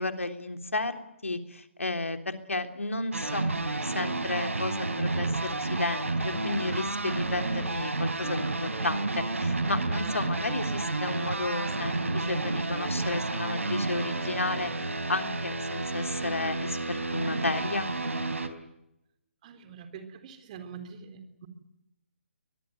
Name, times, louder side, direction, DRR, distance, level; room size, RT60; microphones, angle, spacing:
voice 1, 0.0-14.7 15.1-17.9, left 2 dB, 85° left, 7 dB, 3.4 m, -32 dB
sound 1, 3.1-18.5, right 2 dB, 85° right, 4.0 m, -31 dB
voice 2, 19.4-21.5, right 6 dB, 35° right, 8 dB, 3.9 m, -44 dB
24.5 x 20.0 x 9.5 m, 0.87 s
figure-of-eight pair, 145°, 7 cm